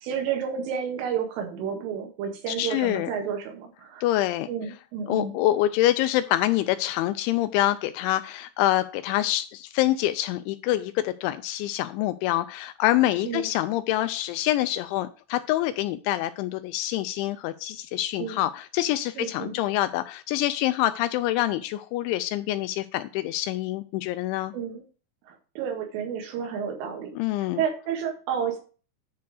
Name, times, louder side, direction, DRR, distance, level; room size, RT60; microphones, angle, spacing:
voice 1, 0.0-4.0 4.5-5.4 13.2-13.5 18.2-18.4 19.2-19.6 24.5-24.8 25.3-27.2 27.6-28.6, right 7 dB, 80° right, 4 dB, 4.3 m, -31 dB
voice 2, 2.5-3.1 4.0-4.5 5.1-24.5 27.2-27.6, left 14 dB, 85° left, 12 dB, 2.8 m, -26 dB
10.5 x 4.6 x 4.8 m, 0.36 s
omnidirectional pair, 5.7 m